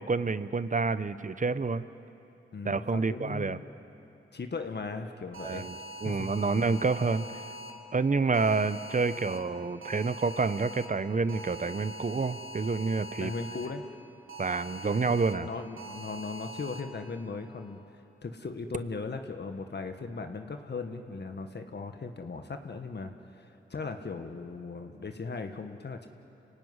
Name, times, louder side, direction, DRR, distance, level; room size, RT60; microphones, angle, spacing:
voice 1, 0.0-1.9 2.6-3.6 5.4-5.8 6.0-7.4 7.9-13.3 14.4-15.5, right 4 dB, 40° right, 14 dB, 0.9 m, -28 dB
voice 2, 2.5-3.6 4.3-5.7 6.0-6.3 13.2-13.8 15.0-17.8 18.2-26.1, left 4 dB, 55° left, 6 dB, 1.5 m, -38 dB
sound 1, 5.3-7.7 8.3-9.4 9.8-10.9 11.3-13.7 14.3-15.3 15.8-16.8, right 1 dB, 80° right, 3.0 m, -43 dB
26.5 x 17.0 x 9.7 m, 3.0 s
cardioid pair, 45°, 21 cm